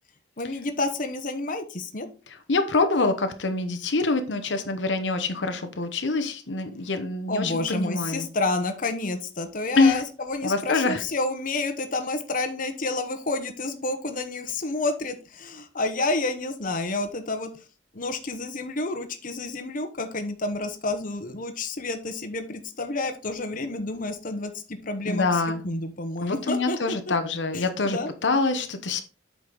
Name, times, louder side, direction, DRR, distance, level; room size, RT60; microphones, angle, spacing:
voice 1, 0.4-2.1 7.3-17.5 17.9-27.1 27.5-28.1, left 2 dB, 50° left, 7 dB, 1.1 m, -29 dB
voice 2, 2.5-8.3 9.8-10.0 10.4-11.0 25.0-25.6 26.2-29.0, left 3 dB, 85° left, 8 dB, 0.9 m, -25 dB
8.0 x 5.2 x 3.9 m, 0.33 s
head